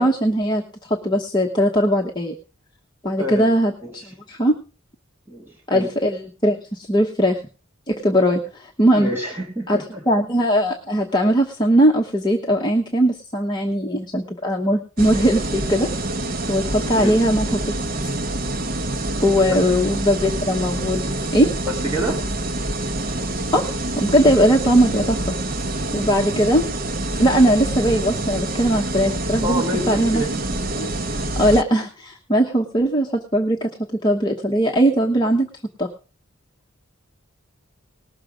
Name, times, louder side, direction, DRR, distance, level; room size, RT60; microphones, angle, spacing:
voice 1, 0.0-2.3 3.0-3.7 4.3-4.6 5.7-7.4 7.9-9.1 9.7-9.8 10.1-15.9 16.5-17.8 19.2-21.0 21.3-21.5 23.5-25.2 25.9-26.6 27.2-30.2 30.8-30.9 31.4-33.7 34.0-35.5 35.8-35.9, equal, 20° left, 0 dB, 1.1 m, -19 dB
voice 2, 5.3-5.9 9.0-10.0 16.9-17.2 19.5-19.6 21.7-22.3 29.4-30.3, equal, 10° right, -4 dB, 1.8 m, -27 dB
sound 1, 15.0-31.6, right 1 dB, 45° right, 0.8 m, -26 dB
19.0 x 6.7 x 5.0 m, 0.35 s
head